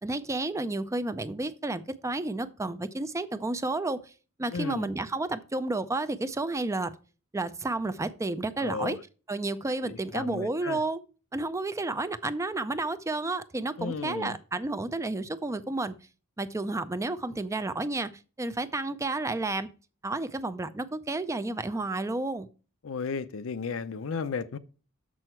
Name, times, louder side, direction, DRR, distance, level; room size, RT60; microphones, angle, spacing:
voice 1, 0.0-4.1 4.4-6.9 7.3-9.0 9.3-11.0 11.3-15.9 16.4-18.1 18.4-19.7 20.0-22.5, right 2 dB, 15° right, 0.4 m, -31 dB
voice 2, 4.5-4.9 8.6-9.0 9.8-10.8 13.8-14.4 22.8-24.6, left 5 dB, 70° left, 0.5 m, -34 dB
6.6 x 6.2 x 4.4 m
head